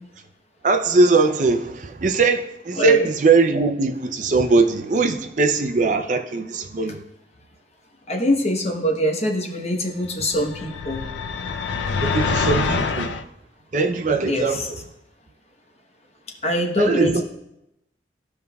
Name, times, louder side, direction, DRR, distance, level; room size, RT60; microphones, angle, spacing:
voice 1, 0.6-7.0 12.0-13.2 13.7-14.8 16.8-17.2, right 3 dB, 45° right, 0.5 m, -20 dB
voice 2, 2.8-3.1 8.1-11.0 14.2-14.6 16.4-17.2, equal, 35° left, 0.9 m, -23 dB
sound 1, 10.3-13.2, left 4 dB, 80° left, 0.4 m, -25 dB
14.5 x 5.3 x 2.3 m
head